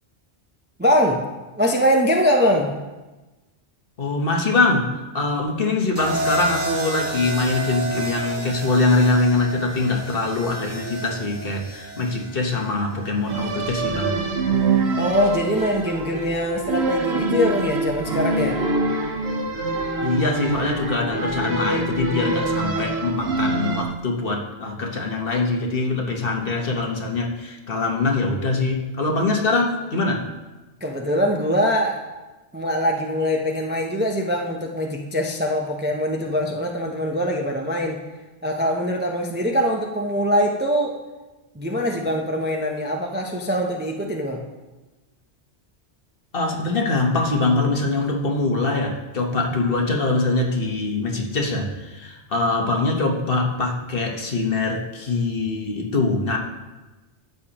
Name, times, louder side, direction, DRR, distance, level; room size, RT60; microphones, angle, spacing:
voice 1, 0.8-1.2 1.6-2.7 15.0-18.6 30.8-32.1 32.5-38.0 38.4-41.0 41.5-44.5, equal, 10° right, 1 dB, 0.5 m, -23 dB
voice 2, 4.0-4.9 5.1-14.2 20.0-30.3 46.3-56.4, left 3 dB, 55° left, 1 dB, 1.3 m, -23 dB
sound 1, 6.0-14.1 15.3-15.7, right 2 dB, 40° right, 1.9 m, -31 dB
sound 2, 13.3-23.8, right 3 dB, 70° right, 1.2 m, -25 dB
13.5 x 6.7 x 2.9 m, 1.1 s
omnidirectional pair, 1.2 m